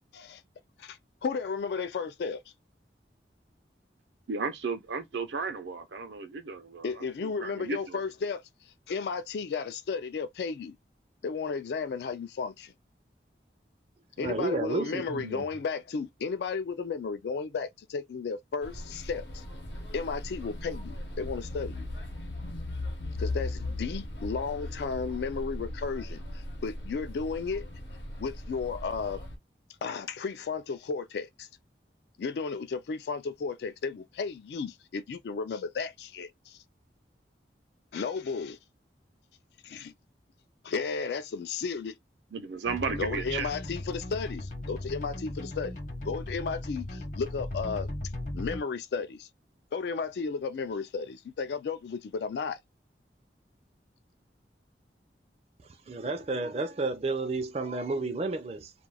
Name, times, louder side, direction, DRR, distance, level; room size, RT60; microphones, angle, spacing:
voice 1, 0.8-2.4 6.8-10.8 11.2-12.7 14.2-19.4 19.9-21.9 23.2-27.7 28.2-29.2 29.8-31.5 32.2-36.6 37.9-38.6 39.6-39.9 40.6-41.9 42.9-47.9 48.3-49.3 49.7-52.6, left 5 dB, 70° left, 0.3 m, -34 dB
voice 2, 4.3-8.0 42.3-43.5, right 4 dB, 85° right, 0.6 m, -34 dB
voice 3, 14.2-15.4 55.9-58.7, right 3 dB, 35° right, 0.4 m, -31 dB
sound 1, 18.6-29.4, left 1 dB, 90° left, 0.9 m, -38 dB
sound 2, 42.7-48.6, left 1 dB, 45° left, 0.8 m, -37 dB
2.3 x 2.2 x 3.3 m
head